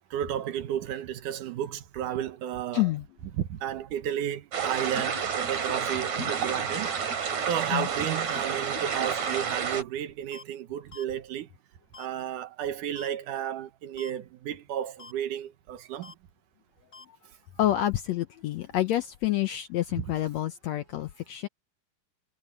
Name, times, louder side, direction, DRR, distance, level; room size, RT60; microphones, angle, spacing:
voice 1, 0.1-2.9 3.4-6.9 7.5-11.5 12.0-16.1 19.9-20.1, right 10 dB, 70° right, 2.5 m, -33 dB
voice 2, 2.7-3.0 7.7-7.9 17.6-21.5, left 14 dB, 85° left, 1.5 m, -28 dB
sound 1, 4.5-9.8, right 7 dB, 55° right, 4.0 m, -30 dB
sound 2, 8.3-8.4 9.3-9.4 10.3-10.4 10.9-11.0 11.9-12.1 13.0-13.1 14.0-14.1 15.0-15.1 16.0-16.1 16.9-17.0, left 4 dB, 25° left, 5.5 m, -45 dB
omnidirectional pair, 4.1 m